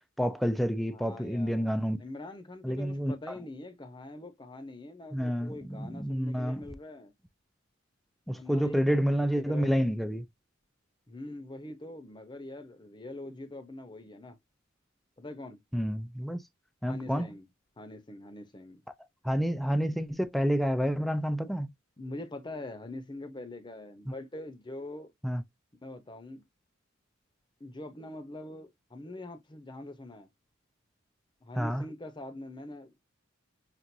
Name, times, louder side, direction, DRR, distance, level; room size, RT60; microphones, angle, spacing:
voice 1, 0.2-2.0 2.6-3.3 5.1-6.6 8.3-10.2 15.7-16.4 16.8-17.3 19.2-21.7 25.2-25.4 31.6-31.8, equal, ahead, 0.3 m, -29 dB
voice 2, 0.9-1.7 2.0-7.1 8.3-9.9 11.1-14.4 15.2-15.6 16.9-17.5 17.8-18.8 22.0-25.1 25.8-26.4 27.6-30.3 31.4-33.0, left 1 dB, 25° left, 0.8 m, -43 dB
5.9 x 2.5 x 2.6 m
head